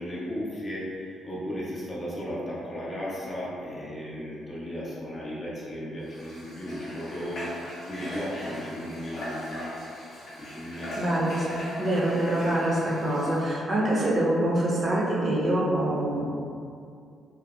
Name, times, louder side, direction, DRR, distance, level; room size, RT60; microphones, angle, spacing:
voice 1, 0.0-9.7 10.0-10.1 10.4-11.0, equal, 30° left, -7 dB, 0.7 m, -35 dB
Water / Water tap faucet, 6.0-13.5, equal, 80° left, 0.8 m, -40 dB
voice 2, 11.0-11.5 11.8-16.2, right 1 dB, 40° right, -5 dB, 0.5 m, -25 dB
2.7 x 2.0 x 2.3 m, 2.3 s
cardioid pair, 90°, 0 cm